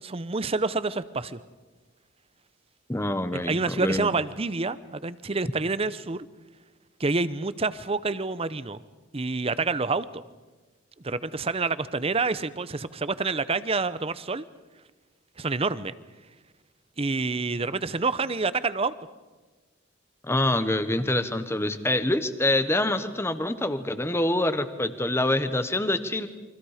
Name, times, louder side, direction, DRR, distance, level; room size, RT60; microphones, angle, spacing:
voice 1, 0.0-1.4 3.3-6.3 7.0-8.8 9.1-10.2 11.0-14.4 15.4-15.9 17.0-18.9, right 3 dB, 30° right, 15 dB, 0.7 m, -28 dB
voice 2, 2.9-4.1 20.2-26.3, left 1 dB, 15° left, 11 dB, 1.1 m, -26 dB
29.5 x 24.0 x 5.0 m, 1.2 s
head